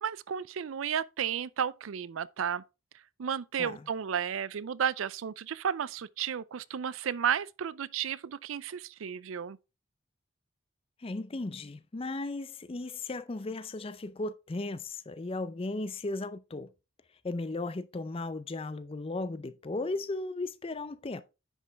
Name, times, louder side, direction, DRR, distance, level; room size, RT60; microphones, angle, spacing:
voice 1, 0.0-2.6 3.2-9.6, right 8 dB, 90° right, 0.4 m, -33 dB
voice 2, 11.0-16.7 17.2-21.2, left 2 dB, 30° left, 0.5 m, -36 dB
10.0 x 5.3 x 3.4 m
head